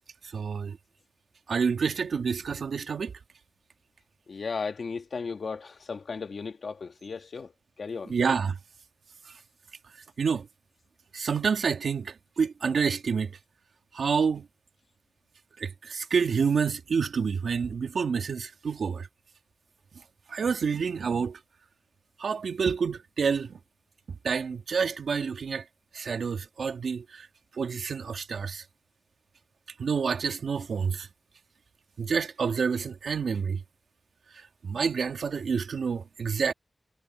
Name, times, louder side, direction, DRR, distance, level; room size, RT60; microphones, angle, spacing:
voice 1, 0.3-0.8 1.5-3.1 8.1-8.6 9.3-9.4 10.2-10.5 11.1-13.4 13.9-14.5 15.6-19.1 20.3-21.4 22.2-23.6 24.2-25.6 25.9-27.3 27.6-28.6 29.8-31.1 32.0-33.6 34.6-36.5, right 6 dB, 80° right, 2.2 m, -28 dB
voice 2, 4.3-7.5 7.8-8.1, left 5 dB, 65° left, 2.0 m, -35 dB
cardioid pair, 65°, 0 cm